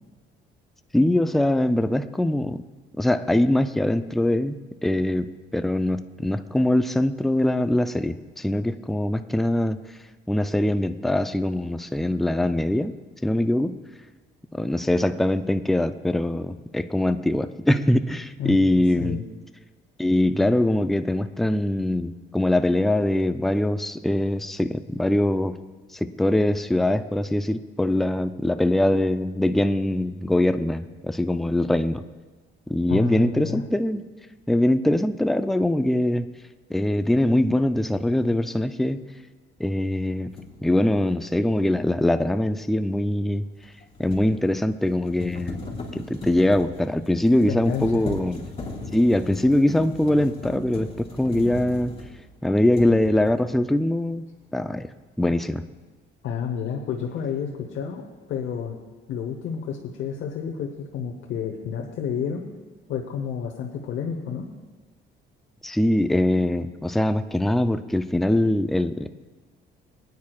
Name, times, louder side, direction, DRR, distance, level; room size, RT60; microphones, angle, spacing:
voice 1, 0.9-2.6 3.0-5.3 5.5-9.8 10.3-12.9 13.2-13.8 14.5-19.2 20.0-25.6 25.9-32.0 32.7-34.0 34.5-36.3 36.7-39.0 39.6-40.3 40.6-43.5 44.0-45.6 45.9-48.4 48.9-51.9 52.4-54.2 54.5-54.9 55.2-55.6 65.6-69.3, left 1 dB, ahead, 10 dB, 0.4 m, -22 dB
voice 2, 18.4-19.2 32.9-33.6 47.4-48.0 56.2-58.8 59.1-62.5 62.9-64.5, left 7 dB, 75° left, 1 dB, 1.0 m, -30 dB
sound 1, 40.4-40.5 43.6-52.3 52.7-53.5, left 3 dB, 30° left, 3.5 m, -37 dB
19.5 x 9.5 x 2.4 m, 1.3 s
cardioid pair, 95°, 20 cm